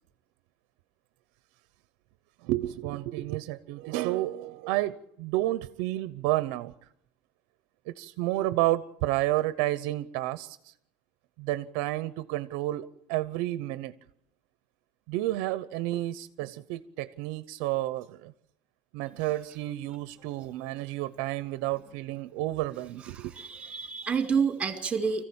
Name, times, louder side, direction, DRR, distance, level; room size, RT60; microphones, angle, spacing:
voice 1, 2.4-6.7 7.9-10.7 11.4-13.9 15.1-18.3 18.9-23.3, right 16 dB, 60° right, 0.8 m, -31 dB
voice 2, 23.1-25.2, right 6 dB, 15° right, 2.2 m, -29 dB
24.5 x 15.0 x 8.7 m
cardioid pair, 175°, 6 cm